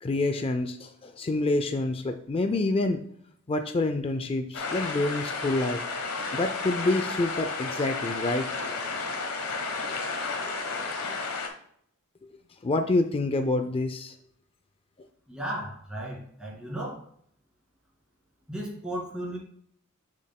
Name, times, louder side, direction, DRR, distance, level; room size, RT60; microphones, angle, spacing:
voice 1, 0.0-3.0 3.5-5.8 6.3-8.5 10.4-10.5 12.6-14.1, left 2 dB, 25° left, 7 dB, 0.4 m, -27 dB
sound 1, 4.5-11.5, left 4 dB, 90° left, 1.3 m, -32 dB
voice 2, 15.3-17.1 18.5-19.4, right 1 dB, 5° right, -4 dB, 2.4 m, -35 dB
7.5 x 7.2 x 2.3 m, 0.66 s
head